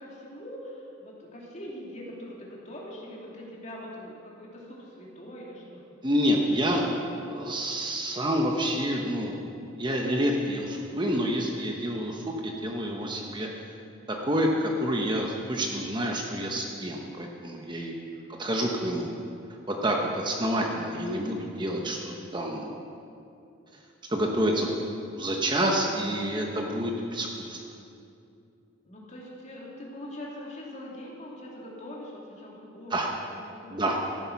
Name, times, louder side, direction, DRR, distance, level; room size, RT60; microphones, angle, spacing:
voice 1, 0.0-6.0 18.1-18.4 28.8-32.9 33.3-33.8, left 1 dB, 35° left, -3 dB, 2.7 m, -43 dB
voice 2, 6.0-6.9 7.3-9.4 9.8-13.5 14.1-17.9 18.4-19.1 19.7-22.7 24.1-24.7 25.2-27.6 32.9-33.1 33.7-34.0, equal, 25° right, 1 dB, 1.1 m, -28 dB
14.0 x 11.0 x 5.9 m, 2.6 s
head